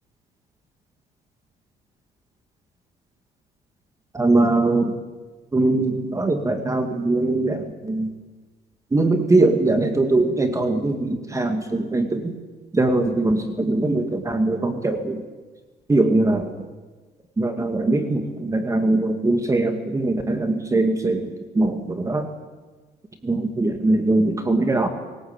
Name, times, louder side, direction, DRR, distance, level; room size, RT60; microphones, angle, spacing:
voice 1, 4.1-4.9 5.5-8.1 8.9-12.3 12.7-15.2 15.9-16.5 17.4-22.3 23.2-24.9, right 2 dB, 20° right, 6 dB, 2.2 m, -21 dB
22.5 x 18.5 x 8.9 m, 1.3 s
cardioid pair, 110°, 17 cm